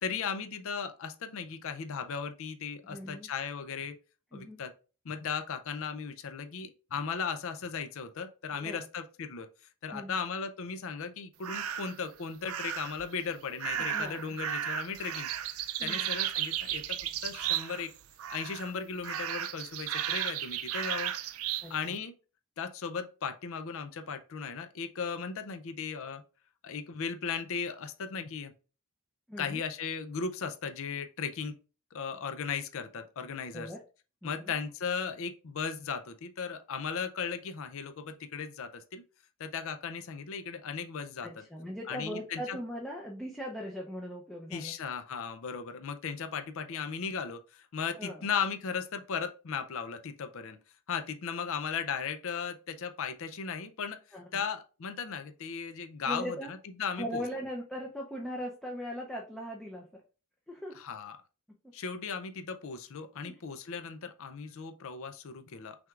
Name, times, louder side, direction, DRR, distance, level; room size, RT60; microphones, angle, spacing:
voice 1, 0.0-4.0 4.3-4.7 5.0-9.5 9.8-15.3 15.8-17.0 17.2-17.9 18.3-21.1 21.7-22.1 22.6-26.2 26.6-28.5 29.4-31.6 31.9-33.7 34.2-39.0 39.4-41.4 41.9-42.6 44.5-50.6 50.9-54.0 54.3-57.2 60.8-61.1 61.7-65.8, left 6 dB, 65° left, 8 dB, 0.5 m, -36 dB
voice 2, 2.8-3.3 4.3-4.6 8.6-8.8 9.9-10.2 13.8-14.3 15.8-16.1 21.6-22.0 29.3-29.6 33.5-33.8 34.2-34.5 41.2-44.7 48.0-48.3 54.1-54.4 56.1-56.5 56.9-60.0 60.5-60.8 63.2-63.4, equal, ahead, -2 dB, 0.6 m, -40 dB
sound 1, 11.4-12.0 12.5-13.0 13.6-17.9 18.2-18.7 19.0-21.7, right 10 dB, 70° right, 0.4 m, -34 dB
6.0 x 3.5 x 2.4 m, 0.35 s
head